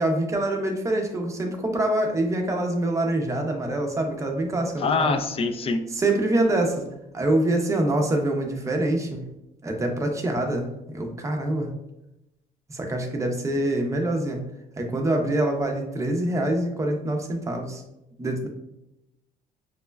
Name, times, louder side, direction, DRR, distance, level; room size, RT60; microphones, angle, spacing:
voice 1, 0.0-5.1 5.9-6.9 7.1-9.2 9.6-11.7 12.7-14.4 14.8-17.8 18.2-18.5, right 1 dB, 20° right, 2 dB, 0.6 m, -25 dB
voice 2, 4.8-5.8, left 4 dB, 35° left, 7 dB, 0.4 m, -24 dB
6.0 x 2.1 x 2.2 m, 0.90 s
cardioid pair, 110°, 17 cm